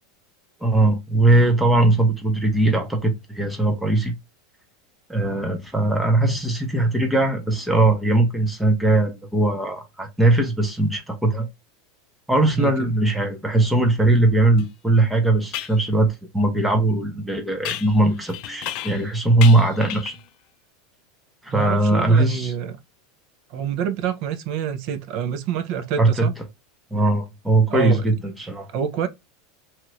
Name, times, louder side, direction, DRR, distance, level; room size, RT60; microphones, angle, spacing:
voice 1, 0.6-4.1 5.1-11.5 12.3-20.1 21.4-22.5 26.0-26.3 26.9-28.7, right 2 dB, 5° right, 0.6 m, -20 dB
voice 2, 12.6-12.9 21.5-22.8 23.5-26.3 27.7-28.1 28.7-29.1, right 8 dB, 45° right, 0.5 m, -27 dB
sound 1, 14.6-14.7 15.5-15.8 17.6-19.1 19.4-20.3, left 13 dB, 45° left, 0.3 m, -33 dB
2.9 x 2.4 x 3.0 m
supercardioid pair, 165°, 0 cm